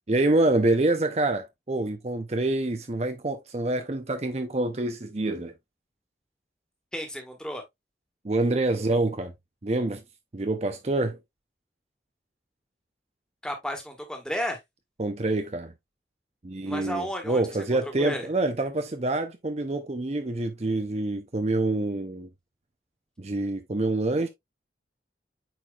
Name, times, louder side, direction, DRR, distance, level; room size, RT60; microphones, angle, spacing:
voice 1, 0.1-5.5 8.2-9.3 9.6-10.0 10.3-11.2 15.0-15.7 16.4-22.3 23.2-24.3, right 2 dB, 35° right, 0.6 m, -26 dB
voice 2, 6.9-7.6 13.4-14.6 16.7-17.4 17.8-18.3, equal, 5° left, 1.6 m, -32 dB
8.8 x 4.7 x 2.4 m
head